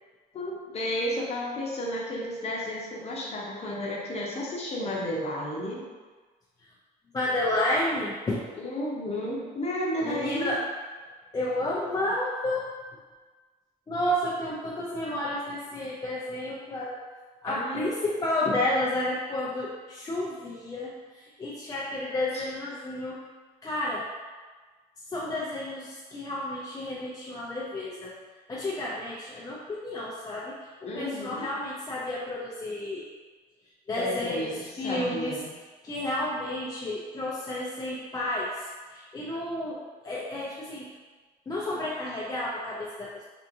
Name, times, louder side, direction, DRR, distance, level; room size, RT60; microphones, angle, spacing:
voice 1, 0.3-5.8 8.5-10.6 17.5-17.8 22.3-22.5 30.8-31.5 34.0-35.5, left 1 dB, 40° left, -3 dB, 0.8 m, -32 dB
voice 2, 7.1-8.4 10.0-10.7 11.3-12.7 13.9-17.0 17.4-23.2 23.6-24.1 25.1-28.1 28.5-30.6 30.8-33.1 33.9-35.4 35.8-38.6 38.9-39.8 40.0-40.9 41.5-43.2, left 1 dB, 20° left, -5 dB, 0.4 m, -31 dB
3.6 x 2.6 x 2.6 m, 1.4 s
cardioid pair, 110°, 17 cm